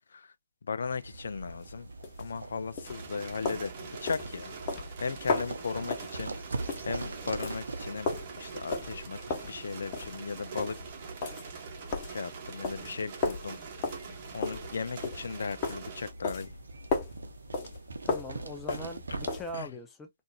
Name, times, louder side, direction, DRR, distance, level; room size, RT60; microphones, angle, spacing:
voice 1, 0.7-1.9 2.2-4.5 5.0-6.3 6.9-8.1 8.4-10.8 12.1-13.6 14.3-16.5 19.5-19.7, left 5 dB, 65° left, 0.4 m, -36 dB
sound 1, 0.8-19.4, right 3 dB, 75° right, 0.7 m, -43 dB
sound 2, 1.2-19.6, left 4 dB, 30° left, 1.2 m, -37 dB
sound 3, 2.8-16.1, right 5 dB, 40° right, 1.1 m, -45 dB
voice 2, 18.0-20.1, equal, 10° left, 0.7 m, -41 dB
3.7 x 2.6 x 2.4 m
figure-of-eight pair, 135°, 0 cm